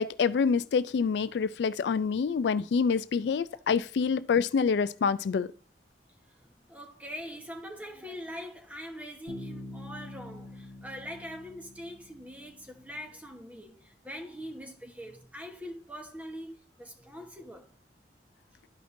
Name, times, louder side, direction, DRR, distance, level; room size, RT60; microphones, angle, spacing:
voice 1, 0.0-5.5, left 5 dB, 75° left, 0.3 m, -26 dB
voice 2, 6.3-17.8, equal, 10° right, 1.1 m, -43 dB
Bass guitar, 9.3-13.0, left 1 dB, 70° right, 4.5 m, -46 dB
12.5 x 5.1 x 2.6 m
head